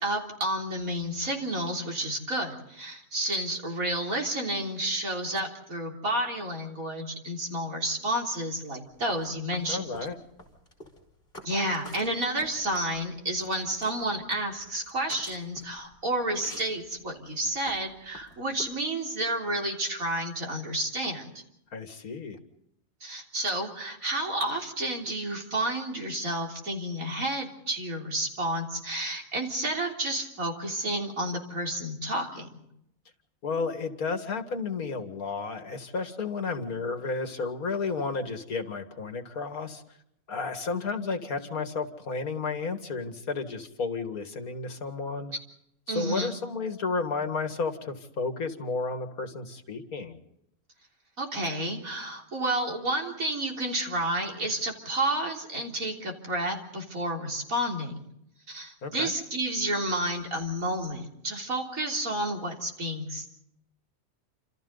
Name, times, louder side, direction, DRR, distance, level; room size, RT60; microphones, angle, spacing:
voice 1, 0.0-9.9 11.4-21.4 23.0-32.6 45.9-46.3 51.2-58.1 58.5-63.3, right 1 dB, 70° right, 0 dB, 4.0 m, -30 dB
sound 1, 8.9-18.7, left 1 dB, 40° left, 4.7 m, -49 dB
voice 2, 9.7-10.2 21.7-22.4 33.4-39.8 40.3-45.3 45.9-50.2 58.8-59.1, left 4 dB, 75° left, 7 dB, 2.4 m, -32 dB
28.5 x 27.5 x 4.0 m, 0.77 s
omnidirectional pair, 1.5 m